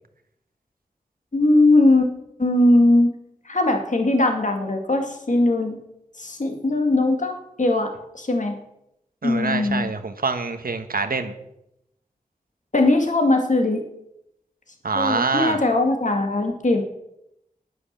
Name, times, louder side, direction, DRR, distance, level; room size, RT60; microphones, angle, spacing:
voice 1, 1.3-2.1 2.4-3.1 3.5-5.8 6.2-8.6 9.2-9.9 12.7-13.8 15.0-16.8, left 2 dB, 55° left, 4 dB, 2.1 m, -20 dB
voice 2, 9.2-11.3 14.8-15.6, right 4 dB, 80° right, 7 dB, 1.3 m, -25 dB
10.5 x 9.9 x 6.8 m, 0.81 s
wide cardioid pair, 50°, 15 cm